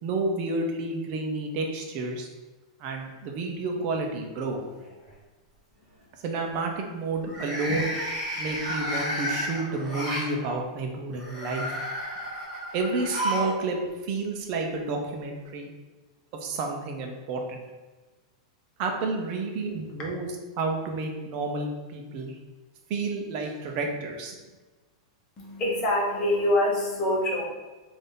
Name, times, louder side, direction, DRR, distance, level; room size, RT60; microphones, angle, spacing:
voice 1, 0.0-2.3 2.8-4.6 6.2-7.9 8.4-11.7 12.7-13.8 14.0-15.7 16.4-17.6 18.8-20.3 20.6-22.4 22.9-24.4, right 3 dB, 35° right, 2 dB, 0.7 m, -30 dB
sound 1, 3.7-4.3 4.7-5.1 7.2-10.3 11.1-13.6 13.8-13.9 15.0-15.1, equal, 20° right, 1.5 m, -32 dB
voice 2, 25.4-27.4, left 1 dB, 25° left, -3 dB, 0.9 m, -25 dB
3.9 x 2.6 x 3.8 m, 1.2 s
supercardioid pair, 160°, 3 cm